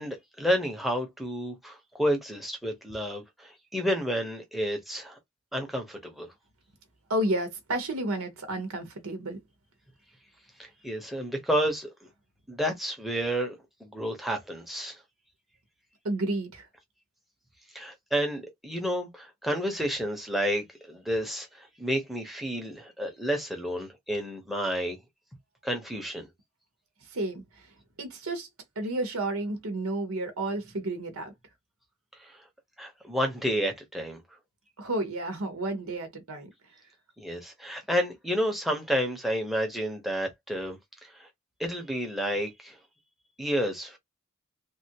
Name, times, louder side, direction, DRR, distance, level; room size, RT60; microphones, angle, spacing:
voice 1, 0.0-5.2 5.5-6.3 10.6-11.9 12.5-15.0 17.7-25.0 25.6-26.3 32.2-32.4 32.8-34.2 37.2-41.3 41.6-42.8 43.4-44.0, equal, ahead, 0.8 m, -30 dB
voice 2, 7.1-9.4 16.0-16.7 27.0-27.7 28.0-28.5 28.8-31.3 34.8-36.5, right 1 dB, 80° right, 0.9 m, -31 dB
3.4 x 2.4 x 2.8 m
head